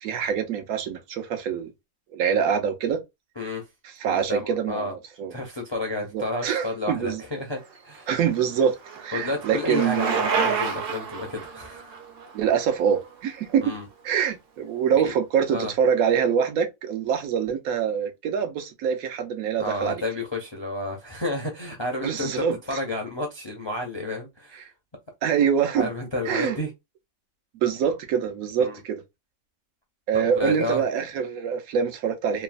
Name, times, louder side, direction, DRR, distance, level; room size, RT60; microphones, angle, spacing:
voice 1, 0.0-1.7 2.1-3.0 4.0-5.4 6.1-7.2 8.1-10.2 12.3-13.6 14.0-20.0 22.0-22.8 25.2-25.9 26.2-26.6 27.6-29.0 30.1-32.4, right 7 dB, 85° right, 1.1 m, -25 dB
voice 2, 4.1-4.9 5.3-8.1 9.1-12.0 13.6-13.9 15.0-15.1 15.5-15.7 19.6-22.3 22.7-24.7 25.8-26.7 28.6-28.7 30.1-30.8, left 2 dB, 45° left, 0.3 m, -31 dB
Bicycle, 7.8-13.7, right 5 dB, 55° right, 0.7 m, -30 dB
3.0 x 2.0 x 2.4 m
omnidirectional pair, 1.4 m